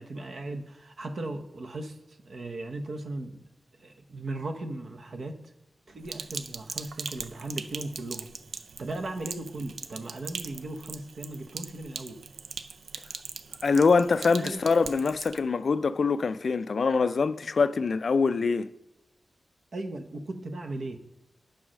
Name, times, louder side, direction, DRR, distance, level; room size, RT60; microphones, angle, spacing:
voice 1, 0.0-2.0 2.2-3.5 3.8-5.4 5.9-8.3 8.8-12.2 14.3-14.7 19.7-21.0, right 2 dB, 60° right, 0.9 m, -37 dB
Sink (filling or washing), 6.0-15.4, right 5 dB, 90° right, 0.5 m, -40 dB
voice 2, 13.6-18.7, left 4 dB, 55° left, 0.3 m, -24 dB
8.9 x 4.7 x 6.2 m
wide cardioid pair, 130°, 0 cm